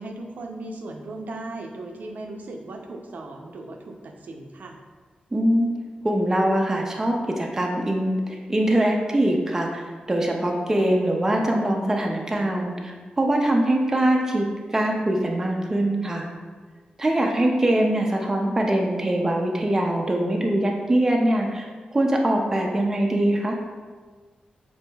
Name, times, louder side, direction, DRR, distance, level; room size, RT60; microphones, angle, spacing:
voice 1, 0.0-4.8, right 2 dB, 75° right, 3 dB, 0.5 m, -37 dB
voice 2, 5.3-5.7 6.0-16.3 17.0-21.7 21.9-23.6, right 1 dB, 15° right, 1 dB, 0.3 m, -23 dB
7.4 x 2.6 x 2.3 m, 1.5 s
wide cardioid pair, 165°, 3 cm